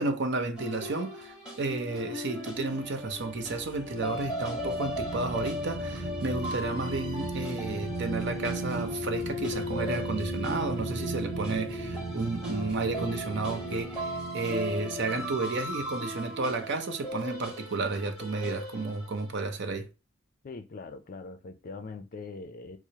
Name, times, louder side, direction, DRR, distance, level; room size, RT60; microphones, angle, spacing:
voice 1, 0.0-19.9, right 3 dB, 60° right, 0.7 m, -32 dB
sound 1, 0.6-19.3, left 1 dB, 5° right, 1.3 m, -38 dB
sound 2, 3.4-16.6, right 2 dB, 25° right, 0.9 m, -37 dB
voice 2, 20.4-22.8, left 3 dB, 45° left, 0.4 m, -42 dB
4.6 x 2.0 x 2.7 m
head